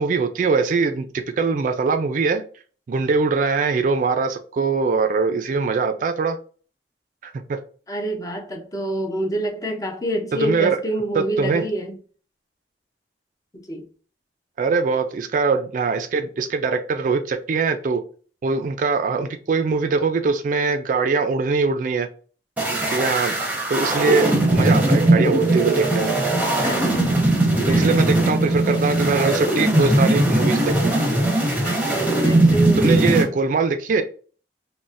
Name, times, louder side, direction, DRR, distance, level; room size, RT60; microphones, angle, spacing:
voice 1, 0.0-2.4 2.9-6.4 7.2-7.6 10.3-10.8 11.1-11.6 14.6-18.0 18.4-22.1 22.6-23.3 23.7-26.1 27.7-30.9 32.8-34.0, right 4 dB, 45° right, 0.3 m, -22 dB
voice 2, 7.9-12.0 13.5-13.9 26.6-27.3 27.7-27.9 31.6-33.2, right 1 dB, 20° left, 0.5 m, -27 dB
sound 1, 22.6-33.2, right 1 dB, 10° right, 0.9 m, -19 dB
3.9 x 2.1 x 2.4 m
head